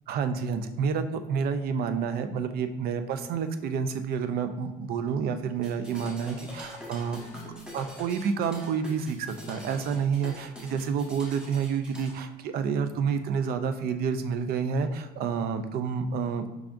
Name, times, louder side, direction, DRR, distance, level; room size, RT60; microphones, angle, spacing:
voice 1, 0.1-7.2 7.7-16.6, right 6 dB, 65° right, 9 dB, 0.4 m, -29 dB
sound 1, 5.6-12.1, equal, 5° right, 1.0 m, -44 dB
4.8 x 3.4 x 2.5 m, 1.1 s
cardioid pair, 110°, 17 cm